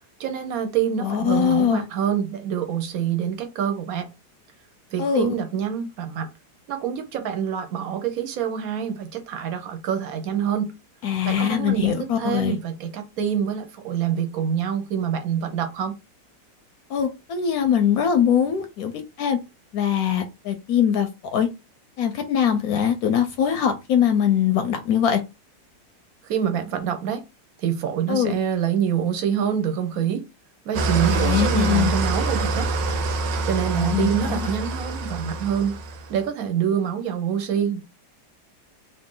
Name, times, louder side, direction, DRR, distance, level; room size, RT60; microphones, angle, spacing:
voice 1, 0.2-4.1 4.9-6.3 6.7-10.7 11.2-15.9 26.3-27.2 27.6-30.2 30.7-32.7 33.4-35.7 36.1-37.8, right 8 dB, 60° right, 1.1 m, -26 dB
voice 2, 1.0-1.8 5.0-5.3 11.0-12.6 16.9-18.9 19.2-19.4 19.7-21.5 22.0-25.2 28.1-28.3 31.0-31.9 33.7-34.5, left 8 dB, 70° left, 0.9 m, -22 dB
Engine starting / Idling, 30.7-36.2, right 3 dB, 90° right, 1.3 m, -25 dB
3.0 x 2.7 x 3.6 m
omnidirectional pair, 1.9 m